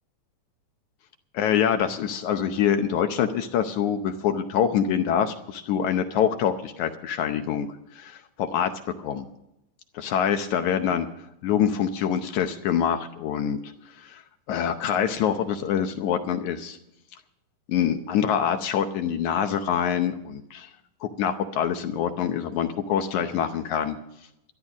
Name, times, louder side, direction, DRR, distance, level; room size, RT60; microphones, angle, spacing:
voice 1, 1.3-8.7 9.0-9.3 9.9-11.1 11.4-13.6 14.0-14.2 14.5-16.8 17.7-20.7 21.0-24.0, left 8 dB, 70° left, 7 dB, 2.0 m, -25 dB
13.0 x 11.5 x 6.0 m, 0.85 s
omnidirectional pair, 3.9 m